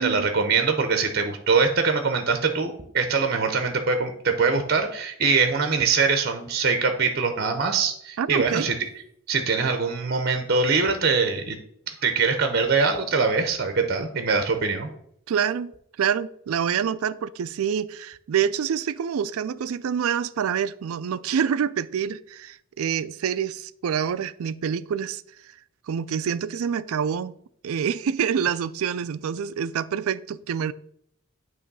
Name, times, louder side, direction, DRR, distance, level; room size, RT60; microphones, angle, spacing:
voice 1, 0.0-8.7 9.3-11.6 12.0-14.9, right 4 dB, 45° right, 0.7 m, -23 dB
voice 2, 8.2-8.7 15.3-15.7 16.0-25.2 25.9-27.4 27.6-30.7, right 8 dB, 75° right, 0.3 m, -26 dB
8.5 x 3.1 x 5.3 m
head